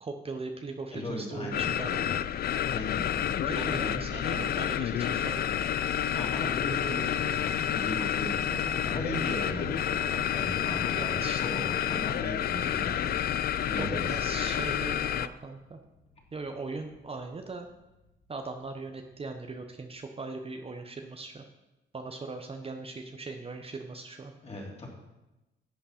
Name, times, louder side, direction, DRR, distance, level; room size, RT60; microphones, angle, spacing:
voice 1, 0.0-2.1 3.5-5.6 10.9-11.8 13.8-15.8 16.3-17.7 18.3-21.4 21.9-24.3, right 3 dB, 30° right, 5 dB, 0.9 m, -39 dB
voice 2, 0.9-2.1 2.7-4.7 6.1-13.3 13.7-14.2 24.4-24.9, left 1 dB, 30° left, -2 dB, 3.1 m, -38 dB
sound 1, 1.5-15.3, left 10 dB, 50° left, 0.4 m, -29 dB
sound 2, 5.0-19.9, left 3 dB, 80° left, 2.2 m, -51 dB
11.0 x 8.1 x 4.3 m, 0.99 s
cardioid pair, 90°, 20 cm